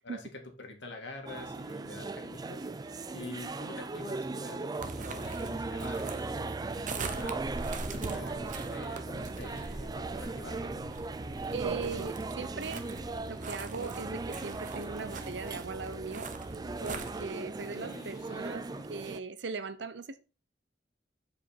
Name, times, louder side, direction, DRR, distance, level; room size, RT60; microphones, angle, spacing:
voice 1, 0.0-7.5 7.9-10.8, left 2 dB, 90° left, 2.0 m, -47 dB
sound 1, 1.3-19.2, right 3 dB, 20° right, 0.4 m, -38 dB
sound 2, 4.8-17.3, right 3 dB, 45° right, 0.9 m, -42 dB
sound 3, 5.2-18.8, left 2 dB, 60° left, 0.8 m, -55 dB
voice 2, 11.5-12.8 13.3-16.3 16.8-20.2, right 4 dB, 80° right, 0.7 m, -39 dB
7.0 x 5.2 x 4.4 m
head